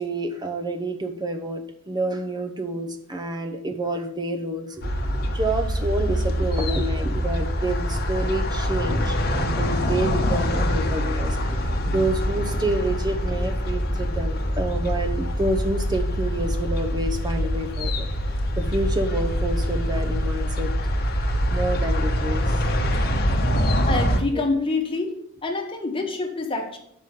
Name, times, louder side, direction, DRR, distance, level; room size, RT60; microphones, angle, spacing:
voice 1, 0.0-18.1 18.6-20.7 21.5-22.6 23.1-23.5 24.3-24.4, right 1 dB, 20° right, 5 dB, 0.9 m, -28 dB
sound 1, 4.8-24.2, equal, 50° left, 1.0 m, -24 dB
voice 2, 23.9-25.1 25.4-26.8, left 3 dB, 25° left, 2 dB, 1.3 m, -26 dB
6.2 x 5.4 x 6.5 m, 0.72 s
head